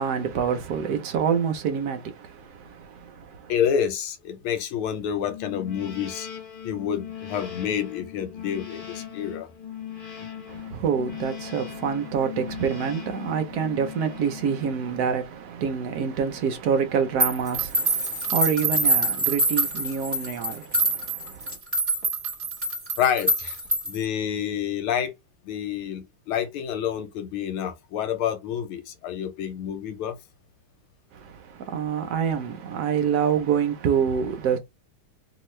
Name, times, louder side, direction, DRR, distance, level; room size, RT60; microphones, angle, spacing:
voice 1, 0.0-3.5 10.5-21.6 31.1-34.6, right 7 dB, 70° right, 0.9 m, -27 dB
voice 2, 3.5-6.3 6.6-9.5 23.0-23.6 23.8-25.1 25.4-30.2, left 9 dB, 80° left, 1.5 m, -28 dB
sound 1, 5.2-15.1, left 9 dB, 35° left, 0.8 m, -39 dB
sound 2, 17.2-24.0, right 2 dB, 20° right, 1.2 m, -25 dB
3.0 x 2.8 x 3.1 m
omnidirectional pair, 2.3 m